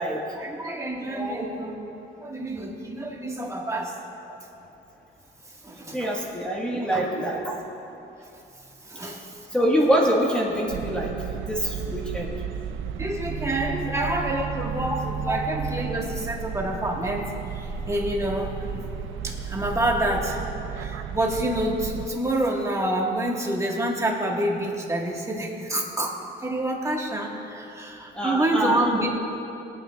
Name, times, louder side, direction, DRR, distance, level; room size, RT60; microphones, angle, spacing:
voice 1, 0.4-1.9 2.2-4.0 5.6-6.1 6.7-7.2 8.9-9.3 13.0-18.9 19.2-20.4 20.7-29.1, right 1 dB, 15° right, -1 dB, 1.8 m, -28 dB
voice 2, 1.0-1.4 4.3-4.4 5.9-7.5 9.5-11.1 11.4-12.3 13.9-14.1 15.3-15.4 28.1-28.8, equal, 5° left, -3 dB, 1.7 m, -25 dB
sound 1, 10.7-22.1, right 7 dB, 80° right, 0.5 m, -33 dB
19.5 x 9.0 x 2.5 m, 2.9 s
cardioid pair, 90°, 20 cm